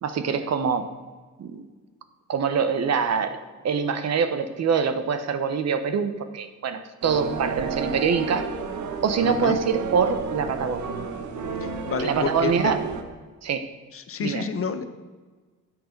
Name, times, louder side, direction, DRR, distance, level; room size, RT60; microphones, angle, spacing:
voice 1, 0.0-0.9 1.4-1.6 2.3-3.4 3.6-8.5 9.0-11.0 12.0-12.8 13.4-13.7 14.2-14.4, right 6 dB, 60° right, 9 dB, 1.1 m, -24 dB
sound 1, 7.0-13.0, right 5 dB, 75° right, 1.4 m, -31 dB
voice 2, 9.2-9.6 11.9-12.7 13.9-14.8, left 6 dB, 45° left, 9 dB, 1.1 m, -29 dB
9.2 x 7.8 x 6.6 m, 1.4 s
cardioid pair, 90°, 30 cm